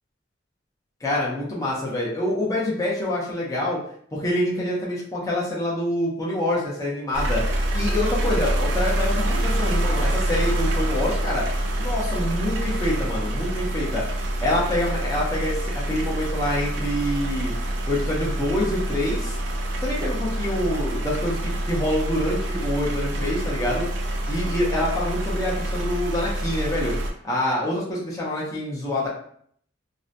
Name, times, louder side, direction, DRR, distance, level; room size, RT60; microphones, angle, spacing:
voice 1, 1.0-3.8 4.1-7.4 7.7-11.4 11.8-14.0 14.4-17.5 17.9-19.4 19.8-23.8 24.3-26.9 27.2-29.1, left 1 dB, 20° left, -6 dB, 0.6 m, -26 dB
sound 1, 7.1-27.1, right 1 dB, 65° right, 0.4 m, -26 dB
2.7 x 2.1 x 2.5 m, 0.63 s
head